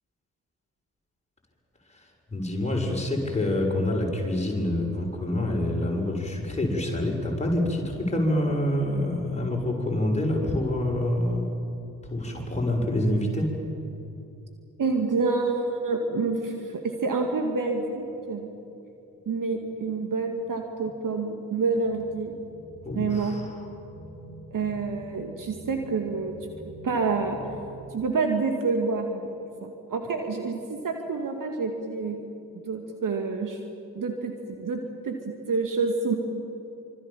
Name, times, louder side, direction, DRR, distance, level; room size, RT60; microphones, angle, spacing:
voice 1, 1.9-11.5 12.0-13.5 22.8-23.5, left 1 dB, 15° left, 0 dB, 7.0 m, -26 dB
voice 2, 14.8-18.5 19.3-22.3 22.9-23.4 24.5-26.4 26.8-27.4 27.9-29.2 29.6-32.2 32.5-33.6 33.9-36.2, right 4 dB, 40° right, 4 dB, 2.5 m, -28 dB
sound 1, 17.6-27.6, right 1 dB, 5° right, 8.0 m, -47 dB
26.5 x 25.5 x 7.5 m, 2.9 s
figure-of-eight pair, 45°, 49 cm